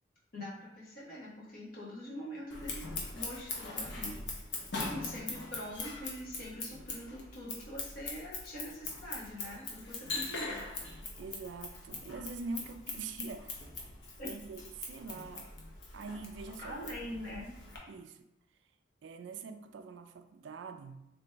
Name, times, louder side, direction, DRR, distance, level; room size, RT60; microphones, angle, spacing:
voice 1, 0.3-2.8 3.1-4.2 4.8-10.6 14.2-14.3 16.6-17.5, equal, 50° left, -6 dB, 1.2 m, -43 dB
Scissors, 2.5-17.8, left 3 dB, 70° left, 0.8 m, -42 dB
voice 2, 11.2-13.6 14.2-15.5 15.9-16.8 17.9-18.3 19.0-21.1, right 4 dB, 70° right, 8 dB, 0.3 m, -44 dB
3.4 x 2.9 x 3.3 m, 0.85 s
head